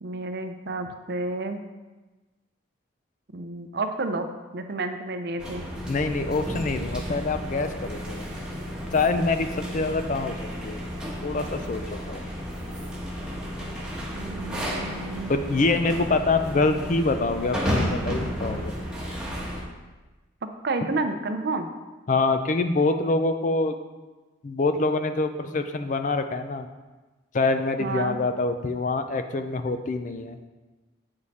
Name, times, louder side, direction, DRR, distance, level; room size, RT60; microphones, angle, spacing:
voice 1, 0.0-1.6 3.3-4.3 4.5-5.7 14.1-15.3 20.6-21.7 27.8-28.2, right 2 dB, 55° right, 7 dB, 0.6 m, -30 dB
sound 1, 5.4-19.6, equal, 5° right, 1.1 m, -32 dB
voice 2, 5.9-8.3 8.9-10.3 10.6-10.8 11.2-12.2 15.3-18.7 22.1-23.7 24.4-26.7 27.3-30.5, left 3 dB, 40° left, 8 dB, 0.4 m, -25 dB
8.0 x 5.2 x 4.2 m, 1.2 s
head